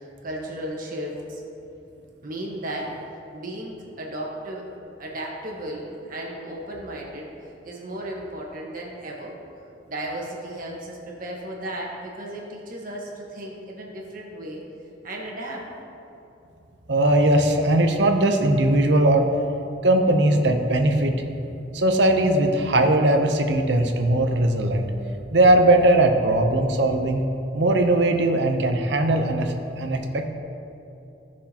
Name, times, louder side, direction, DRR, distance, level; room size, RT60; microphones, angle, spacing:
voice 1, 0.0-1.4 2.2-2.9 3.3-4.7 5.0-7.3 7.6-9.3 9.8-14.6 15.0-15.7, right 1 dB, 50° right, -2 dB, 1.4 m, -34 dB
voice 2, 16.9-19.3 19.8-21.1 21.7-24.9 25.3-27.2 27.5-30.3, right 1 dB, 70° right, 4 dB, 0.8 m, -19 dB
15.5 x 6.1 x 2.9 m, 2.9 s
head